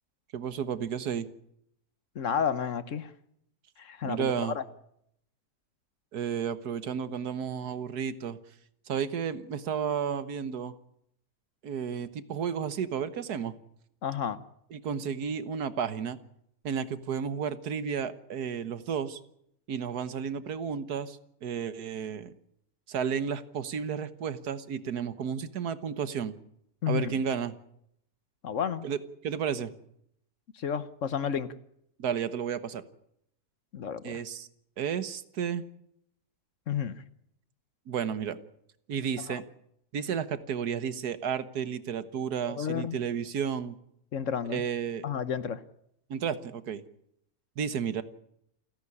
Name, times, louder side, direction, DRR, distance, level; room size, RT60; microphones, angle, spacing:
voice 1, 0.3-1.3 4.0-4.6 6.1-8.4 8.9-10.7 11.6-13.5 14.7-16.2 16.6-19.2 19.7-22.3 22.9-26.3 26.9-27.5 28.8-29.7 32.0-32.8 34.0-34.5 34.8-35.6 37.9-38.4 38.9-39.4 39.9-43.8 44.5-45.1 46.1-46.8 47.6-48.0, right 7 dB, 90° right, 13 dB, 1.7 m, -32 dB
voice 2, 2.1-3.1 3.8-4.6 14.0-14.4 26.8-27.2 28.4-28.9 30.5-31.5 33.7-34.2 36.7-36.9 39.3-39.4 42.5-43.0 44.1-44.6 45.0-45.6, left 7 dB, 55° left, 15 dB, 1.3 m, -31 dB
29.0 x 11.0 x 9.8 m, 0.74 s
omnidirectional pair, 1.6 m